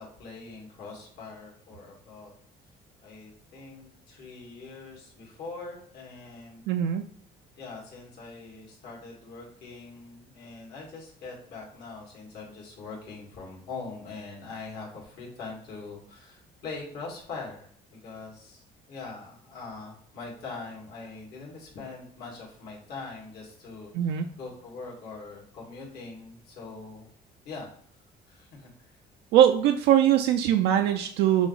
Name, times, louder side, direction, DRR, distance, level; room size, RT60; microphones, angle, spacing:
voice 1, 0.0-2.3 3.0-6.7 7.6-27.1 27.5-27.7 28.3-29.0, left 4 dB, 70° left, -3 dB, 1.9 m, -42 dB
voice 2, 6.7-7.0 23.9-24.3 29.3-31.5, right 10 dB, 85° right, 5 dB, 0.4 m, -21 dB
6.1 x 2.0 x 3.9 m, 0.62 s
cardioid pair, 110°, 17 cm